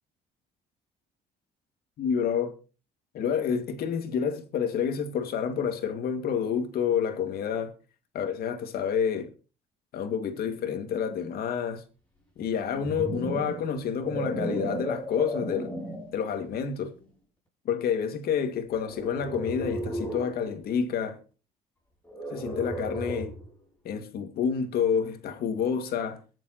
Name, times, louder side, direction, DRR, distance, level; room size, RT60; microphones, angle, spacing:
voice 1, 2.0-2.5 3.1-7.7 8.1-9.3 9.9-11.8 12.4-15.7 16.1-16.9 17.7-21.2 22.3-23.3 23.8-26.2, left 7 dB, 65° left, 2.2 m, -29 dB
sound 1, 12.5-16.2 16.8-17.1 18.8-20.4 22.0-23.5, right 1 dB, 10° left, 6.6 m, -35 dB
22.5 x 7.6 x 3.0 m
cardioid pair, 110°, 17 cm